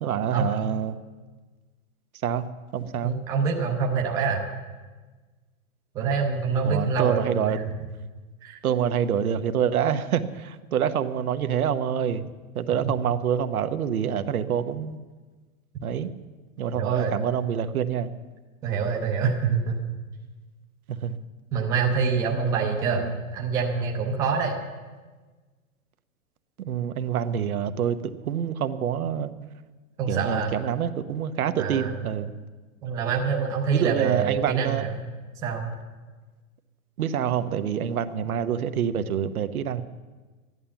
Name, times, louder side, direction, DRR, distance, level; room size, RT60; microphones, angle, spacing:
voice 1, 0.0-0.9 2.2-2.4 2.7-3.1 6.6-7.6 8.6-12.2 12.5-15.0 15.8-16.1 16.6-18.1 20.9-21.2 22.8-23.1 26.6-29.3 30.1-32.3 33.7-34.9 37.0-39.8, right 8 dB, 85° right, 10 dB, 1.1 m, -26 dB
voice 2, 3.0-4.4 5.9-7.7 8.4-8.6 12.8-12.9 16.7-17.2 18.6-19.8 21.5-23.0 23.3-24.6 30.0-30.5 31.6-31.9 32.8-34.9 35.4-35.7, right 5 dB, 10° right, 0 dB, 0.7 m, -25 dB
13.0 x 11.0 x 7.0 m, 1.3 s
hypercardioid pair, 165°, 42 cm